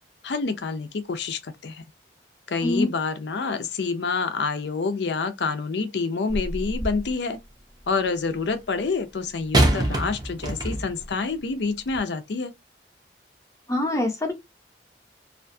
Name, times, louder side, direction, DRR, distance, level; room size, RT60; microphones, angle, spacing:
voice 1, 0.2-1.8 2.5-7.4 7.9-12.5, left 4 dB, 70° left, 0.5 m, -27 dB
sound 1, 6.3-7.1 9.5-11.1 11.9-12.0, right 1 dB, 20° right, 0.6 m, -24 dB
voice 2, 13.7-14.3, left 1 dB, 15° left, 0.7 m, -24 dB
2.5 x 2.2 x 2.5 m
head